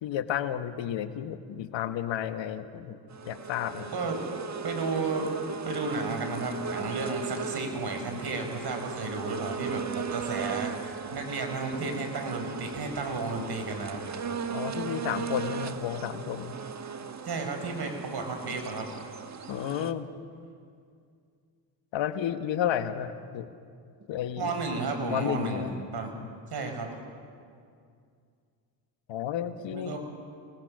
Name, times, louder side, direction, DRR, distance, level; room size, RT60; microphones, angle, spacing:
voice 1, 0.0-3.0 3.2-3.9 14.5-16.6 19.5-20.1 21.9-23.5 24.1-24.5 25.1-25.7 26.1-26.3 29.1-29.9, left 10 dB, 65° left, 10 dB, 1.3 m, -32 dB
sound 1, 3.1-19.9, right 6 dB, 35° right, 1.4 m, -37 dB
voice 2, 4.6-5.3 5.6-14.0 17.2-18.9 24.4-25.7 25.9-26.1 26.5-26.9 29.7-30.0, right 3 dB, 55° right, 5 dB, 5.4 m, -33 dB
29.0 x 19.5 x 6.5 m, 2.3 s
supercardioid pair, 65°, 47 cm